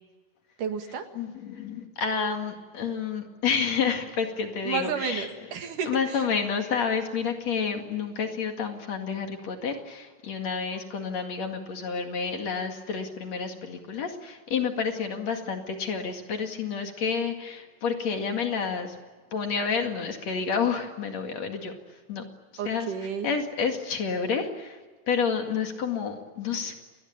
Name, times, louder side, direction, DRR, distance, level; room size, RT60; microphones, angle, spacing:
voice 1, 0.6-1.1 4.6-6.2 22.6-23.3, right 6 dB, 70° right, 6 dB, 3.4 m, -31 dB
voice 2, 1.1-5.3 5.9-19.0 19.3-22.2 22.5-22.9 23.2-24.8 25.1-26.7, left 6 dB, 55° left, 5 dB, 3.1 m, -29 dB
29.0 x 21.0 x 8.8 m, 1.3 s
omnidirectional pair, 4.0 m